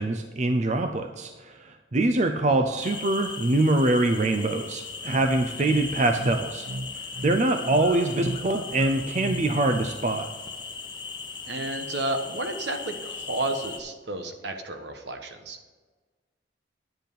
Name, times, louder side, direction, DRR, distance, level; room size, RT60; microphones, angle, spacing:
voice 1, 0.0-6.7 6.9-10.3, right 2 dB, 40° right, 6 dB, 0.5 m, -24 dB
voice 2, 2.5-2.8 5.6-5.8 11.5-15.6, right 2 dB, 70° right, 6 dB, 1.2 m, -32 dB
sound 1, 2.8-13.8, left 5 dB, 25° left, 0.9 m, -38 dB
sound 2, 4.9-10.0, right 1 dB, 90° right, 0.9 m, -35 dB
10.5 x 8.0 x 5.4 m, 1.4 s
head